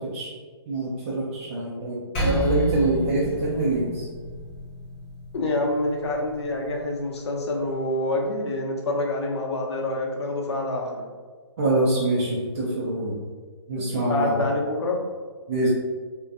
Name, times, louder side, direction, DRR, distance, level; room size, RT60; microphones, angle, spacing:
voice 1, 0.7-4.1 11.6-13.2 13.7-14.5 15.5-15.7, right 2 dB, 30° right, -6 dB, 0.4 m, -25 dB
Percussion, 2.1-6.9, right 2 dB, 20° left, 0.6 m, -31 dB
voice 2, 5.3-11.0 13.8-13.9 14.1-15.0, left 2 dB, 70° left, 0 dB, 0.6 m, -27 dB
2.5 x 2.1 x 2.4 m, 1.5 s
hypercardioid pair, 160°, 15 cm